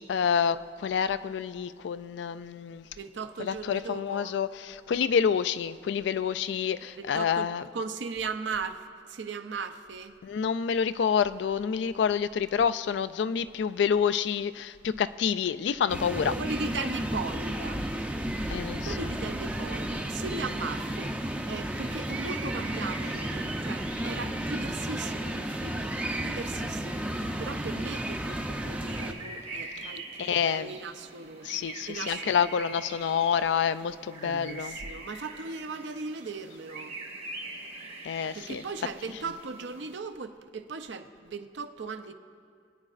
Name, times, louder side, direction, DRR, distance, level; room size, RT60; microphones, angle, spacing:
voice 1, 0.0-2.9 3.4-7.6 10.2-16.3 18.5-19.0 29.8-29.9 30.2-30.7 31.4-34.8 38.0-38.6, left 7 dB, 70° left, 14 dB, 0.3 m, -28 dB
voice 2, 3.0-4.4 7.0-10.1 16.3-17.8 18.8-32.5 34.2-37.0 38.3-42.1, right 4 dB, 75° right, 8 dB, 0.6 m, -38 dB
sound 1, 15.9-29.1, right 1 dB, 5° right, 0.5 m, -33 dB
sound 2, 20.2-40.0, right 3 dB, 35° right, 0.9 m, -45 dB
21.0 x 9.7 x 2.5 m, 2.3 s
head